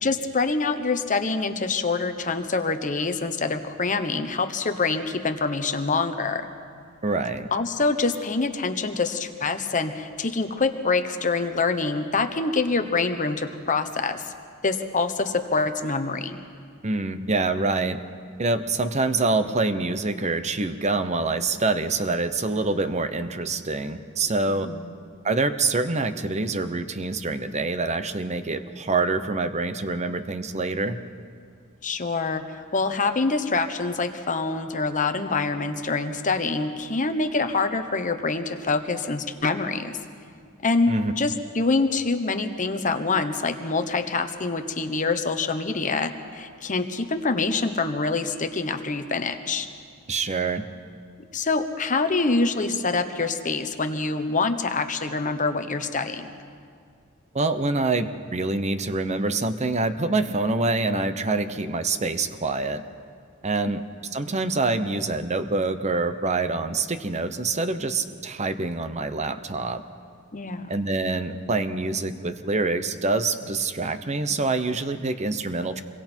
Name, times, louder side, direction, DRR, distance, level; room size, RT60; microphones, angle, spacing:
voice 1, 0.0-6.5 7.5-14.2 14.6-16.4 24.5-24.9 31.8-32.4 32.7-40.0 40.6-40.9 41.2-49.7 51.3-56.3 70.3-70.7, left 3 dB, 35° left, 7 dB, 1.1 m, -25 dB
voice 2, 7.0-7.5 16.8-18.0 18.4-24.7 25.2-31.0 40.9-41.1 50.1-50.6 57.3-62.8 63.4-69.8 70.7-75.8, right 3 dB, 30° right, 10 dB, 0.9 m, -26 dB
27.5 x 22.5 x 4.5 m, 2.1 s
head